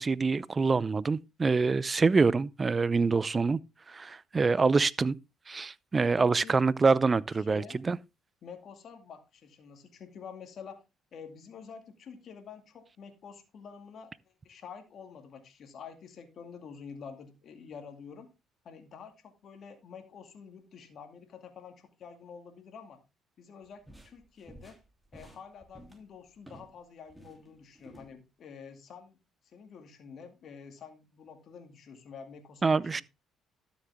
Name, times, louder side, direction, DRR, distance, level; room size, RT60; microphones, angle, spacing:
voice 1, 0.0-3.6 3.9-5.2 5.5-8.0 32.6-33.0, right 4 dB, 30° right, 0.5 m, -26 dB
voice 2, 6.2-6.6 7.3-7.8 8.4-10.8 11.1-14.1 14.4-18.3 18.6-23.0 23.4-24.8 25.1-29.2 29.4-33.0, left 6 dB, 55° left, 2.3 m, -48 dB
sound 1, 23.6-26.8 27.1-28.1, right 1 dB, 10° right, 3.0 m, -53 dB
12.5 x 7.2 x 3.5 m
supercardioid pair, 65°, 0 cm